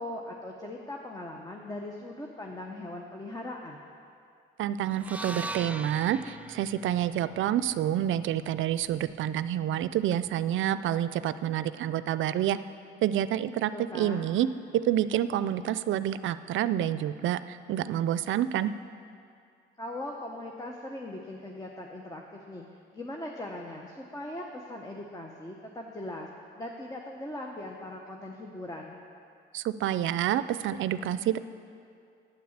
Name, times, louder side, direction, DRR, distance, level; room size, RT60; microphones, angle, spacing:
voice 1, 0.0-3.8 13.7-14.3 19.8-22.7 22.9-26.3 26.5-29.0, left 1 dB, 20° left, 0 dB, 1.0 m, -40 dB
voice 2, 4.6-12.6 13.0-14.5 14.7-18.7 29.5-31.4, right 11 dB, 80° right, 14 dB, 0.4 m, -28 dB
sound 1, 4.9-9.1, right 1 dB, 5° right, 0.5 m, -42 dB
9.3 x 9.2 x 7.3 m, 2.4 s
cardioid pair, 90°, 20 cm